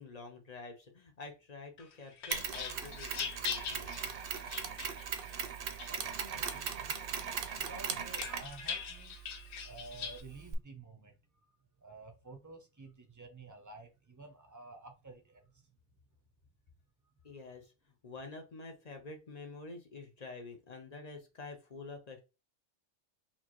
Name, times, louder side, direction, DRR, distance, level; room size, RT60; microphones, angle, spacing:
voice 1, 0.0-3.9 17.2-22.2, left 3 dB, 40° left, 0.6 m, -48 dB
sound 1, 1.8-5.3 5.8-6.7 7.1-10.2, left 6 dB, 70° left, 0.9 m, -42 dB
Mechanisms, 2.3-10.5, right 7 dB, 60° right, 0.7 m, -40 dB
voice 2, 5.8-11.2 11.8-15.7, right 3 dB, 20° right, 0.5 m, -52 dB
4.3 x 2.8 x 2.9 m
omnidirectional pair, 1.2 m